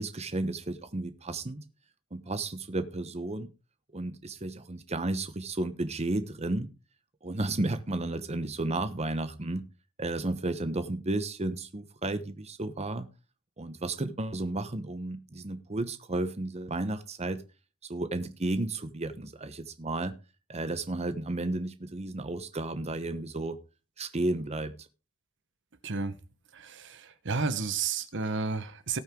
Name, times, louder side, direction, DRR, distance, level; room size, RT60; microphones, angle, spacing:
voice 1, 0.0-1.6 2.1-3.5 3.9-6.7 7.2-9.6 10.0-13.1 13.6-17.4 17.9-20.1 20.5-23.6 24.0-24.9, right 2 dB, 30° right, 1.0 m, -33 dB
voice 2, 25.8-26.1 26.5-29.0, right 4 dB, 60° right, 1.2 m, -32 dB
18.5 x 6.4 x 3.8 m
head